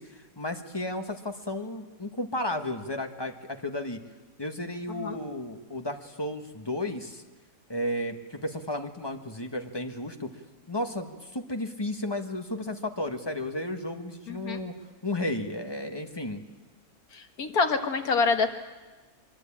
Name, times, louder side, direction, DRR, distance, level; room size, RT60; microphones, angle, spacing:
voice 1, 0.0-4.0 4.4-7.2 7.7-10.3 10.7-14.7 15.0-16.4, left 1 dB, 15° left, 5 dB, 1.6 m, -33 dB
voice 2, 14.3-14.6 17.1-18.5, left 4 dB, 75° left, 5 dB, 2.1 m, -26 dB
23.5 x 23.5 x 8.8 m, 1.3 s
omnidirectional pair, 1.6 m